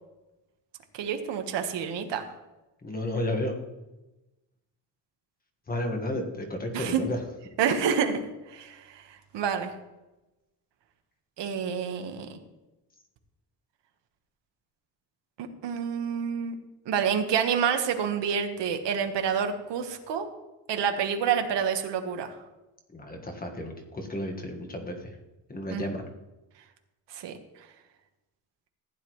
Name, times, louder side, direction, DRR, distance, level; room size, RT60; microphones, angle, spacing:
voice 1, 1.0-2.3 6.7-7.0 7.6-8.2 8.5-8.8 9.3-9.7 11.4-12.3 15.6-16.5 16.9-20.3 20.7-22.3 25.7-25.8 27.1-27.3, right 7 dB, 75° right, 6 dB, 1.4 m, -28 dB
voice 2, 2.8-3.5 5.7-7.2 22.9-25.1 25.5-26.0, left 1 dB, 20° left, 3 dB, 1.5 m, -32 dB
15.0 x 10.0 x 3.1 m, 1.0 s
cardioid pair, 165°, 42 cm